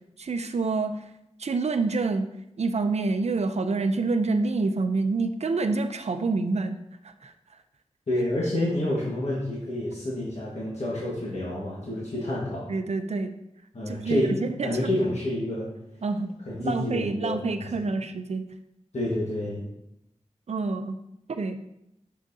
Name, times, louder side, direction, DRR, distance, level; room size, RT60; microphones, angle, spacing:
voice 1, 0.2-1.1 1.4-2.3 2.6-6.8 7.0-7.3 12.7-13.3 13.9-14.9 16.0-16.3 16.6-18.4 20.5-21.0 21.3-21.6, right 3 dB, 65° right, 8 dB, 0.5 m, -27 dB
voice 2, 8.1-12.7 13.7-15.7 16.5-17.4 17.8-17.9 18.9-19.7, left 1 dB, 65° left, -7 dB, 1.5 m, -28 dB
6.5 x 6.1 x 2.7 m, 0.83 s
wide cardioid pair, 65°, 12 cm